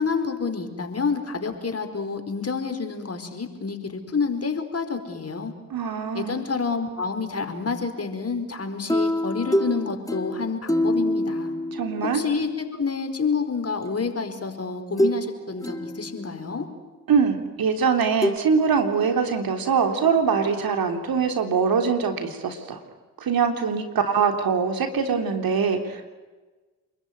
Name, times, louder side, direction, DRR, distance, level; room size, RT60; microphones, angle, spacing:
voice 1, 0.0-5.5 6.1-11.5 12.0-16.7, left 5 dB, 35° left, 6 dB, 4.8 m, -28 dB
voice 2, 5.7-6.4 11.7-12.2 17.1-22.8 23.2-26.2, right 6 dB, 60° right, 5 dB, 3.6 m, -23 dB
sound 1, 8.9-12.5 13.9-14.0 15.0-15.3 15.6-16.5 18.2-18.4, equal, 10° left, 2.1 m, -25 dB
29.0 x 21.5 x 9.5 m, 1.3 s
hypercardioid pair, 40°, 41 cm